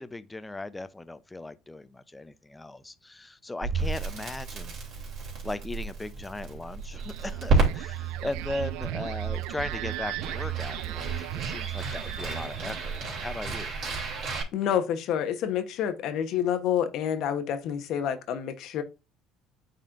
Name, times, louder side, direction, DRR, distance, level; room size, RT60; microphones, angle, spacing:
voice 1, 0.0-4.8 5.4-13.7, left 2 dB, 15° left, 0.6 m, -38 dB
Crackle, 3.6-14.4, right 3 dB, 55° right, 2.9 m, -32 dB
sound 1, 6.9-13.5, right 17 dB, 80° right, 0.3 m, -36 dB
voice 2, 14.5-18.8, left 9 dB, 65° left, 1.0 m, -28 dB
8.9 x 4.2 x 2.5 m
supercardioid pair, 90°, 0 cm